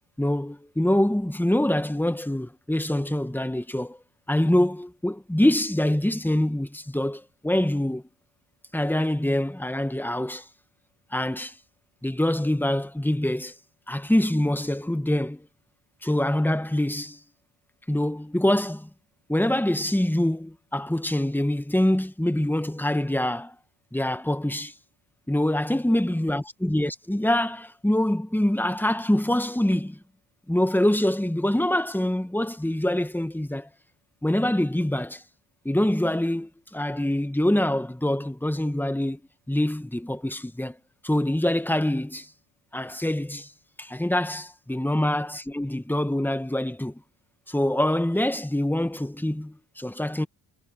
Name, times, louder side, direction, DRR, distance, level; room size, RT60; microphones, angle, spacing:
voice 1, 0.2-4.0 4.3-8.0 8.7-10.4 11.1-11.5 12.0-13.5 13.9-15.5 16.0-17.2 17.9-18.9 19.3-23.5 23.9-24.7 25.3-30.0 30.5-33.7 34.2-35.2 35.6-39.2 39.5-40.8 41.0-42.3 42.7-43.5 43.8-47.0 47.5-50.3, left 1 dB, 5° left, 1.4 m, -25 dB
cardioid pair, 70°, 49 cm